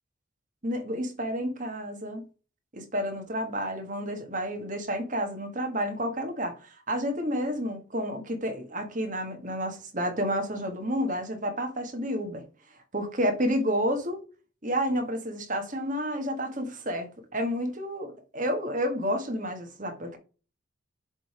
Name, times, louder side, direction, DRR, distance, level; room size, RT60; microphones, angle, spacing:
voice 1, 0.6-2.2 2.7-12.4 12.9-14.2 14.6-20.2, equal, 40° right, 1.6 m, -30 dB
7.3 x 3.6 x 4.9 m
head